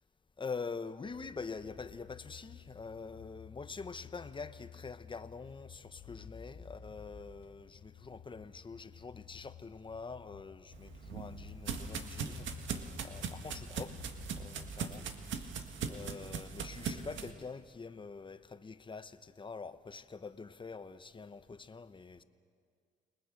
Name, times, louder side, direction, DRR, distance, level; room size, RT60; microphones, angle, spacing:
voice 1, 0.4-14.0 14.3-15.1 15.3-22.2, left 4 dB, 25° left, 12 dB, 1.0 m, -45 dB
sound 1, 1.0-14.7, left 7 dB, 70° left, 1.7 m, -53 dB
sound 2, 10.7-17.3, right 6 dB, 70° right, 1.8 m, -40 dB
29.5 x 20.0 x 6.5 m, 2.2 s
cardioid pair, 90°, 20 cm